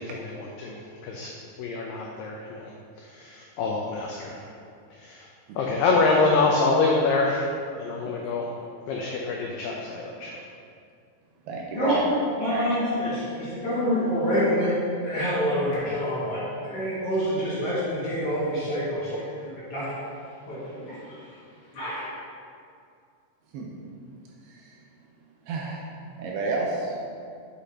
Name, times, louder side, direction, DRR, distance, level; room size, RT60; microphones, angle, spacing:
voice 1, 0.0-2.7 3.0-4.5 4.9-5.3 5.6-7.4 7.8-8.5 8.9-10.4, left 3 dB, 85° left, -1 dB, 2.0 m, -26 dB
voice 2, 11.5-12.1 12.5-12.7 23.5-23.7 24.5-24.8 25.4-25.9 26.2-27.0, right 3 dB, 75° right, -2 dB, 2.5 m, -30 dB
voice 3, 12.4-14.7 15.0-19.9 20.5-21.2 21.7-22.1, equal, 45° left, -10 dB, 2.2 m, -27 dB
8.4 x 8.0 x 2.8 m, 2.3 s
omnidirectional pair, 4.8 m